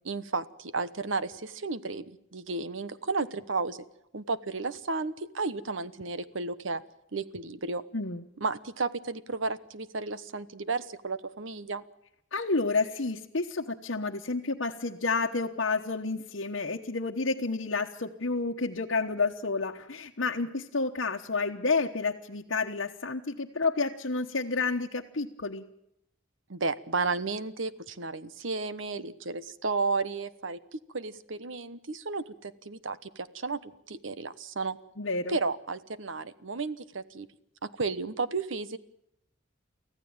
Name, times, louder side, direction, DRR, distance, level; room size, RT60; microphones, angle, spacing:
voice 1, 0.0-3.8 4.1-6.8 7.1-7.8 8.4-11.8 26.5-34.8 35.3-37.3 37.6-38.8, right 3 dB, 80° right, 15 dB, 1.1 m, -33 dB
voice 2, 7.9-8.2 12.3-25.6 35.0-35.4, left 3 dB, 70° left, -2 dB, 1.2 m, -30 dB
24.5 x 15.5 x 8.9 m, 0.79 s
head